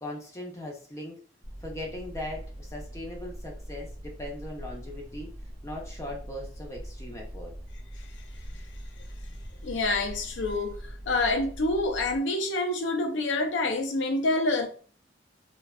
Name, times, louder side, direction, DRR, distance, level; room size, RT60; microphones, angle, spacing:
voice 1, 0.0-1.2 1.6-5.3 5.6-7.5, left 1 dB, 15° left, 0.4 m, -39 dB
sound 1, 1.4-12.2, equal, 35° right, 0.7 m, -42 dB
voice 2, 9.6-14.7, left 2 dB, 85° left, 0.5 m, -27 dB
2.5 x 2.1 x 2.3 m
head